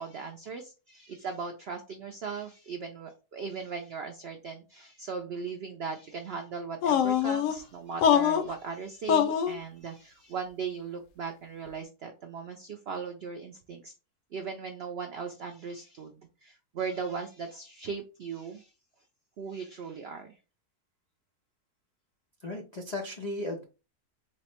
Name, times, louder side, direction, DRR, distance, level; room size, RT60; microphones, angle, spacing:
voice 1, 0.0-13.9 14.3-18.7 19.4-20.4, right 5 dB, 80° right, 4 dB, 0.5 m, -38 dB
sound 1, 6.8-7.5 8.0-8.5 9.1-9.5, left 8 dB, 70° left, 0.8 m, -23 dB
voice 2, 22.4-23.6, left 2 dB, 85° left, 1 dB, 0.3 m, -35 dB
4.2 x 2.1 x 4.3 m, 0.31 s
omnidirectional pair, 1.7 m